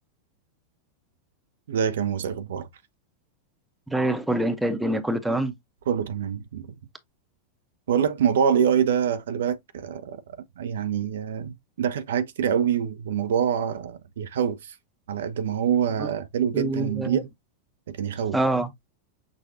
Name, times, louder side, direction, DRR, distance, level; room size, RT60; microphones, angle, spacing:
voice 1, 1.7-2.7 5.9-6.7 7.9-10.2 10.6-14.7 15.1-17.3 17.9-18.4, right 8 dB, 60° right, 0.5 m, -25 dB
voice 2, 3.9-5.5 16.0-16.1 16.5-17.2 18.3-18.7, right 1 dB, 5° right, 0.7 m, -25 dB
6.0 x 2.3 x 2.6 m
figure-of-eight pair, 90°, 0 cm